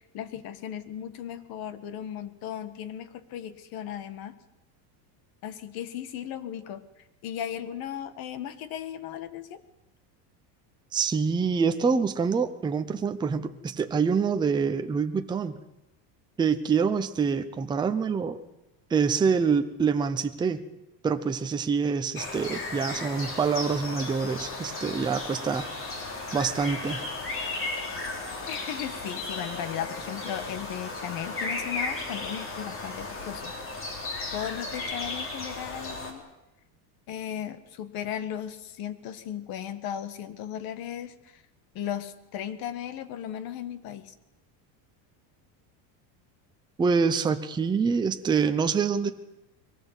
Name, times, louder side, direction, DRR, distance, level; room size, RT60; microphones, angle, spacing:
voice 1, 0.0-4.4 5.4-6.8 7.2-9.6 28.5-33.5 34.3-36.2 37.1-41.4 41.7-44.1, left 10 dB, 45° left, 12 dB, 1.7 m, -36 dB
voice 2, 10.9-15.5 16.4-18.4 18.9-20.6 21.0-25.7 26.3-27.0 46.8-49.1, right 5 dB, 10° right, 7 dB, 0.7 m, -26 dB
sound 1, 22.1-36.1, left 3 dB, 25° left, 3.6 m, -35 dB
23.0 x 18.0 x 8.2 m, 0.97 s
cardioid pair, 170°, 49 cm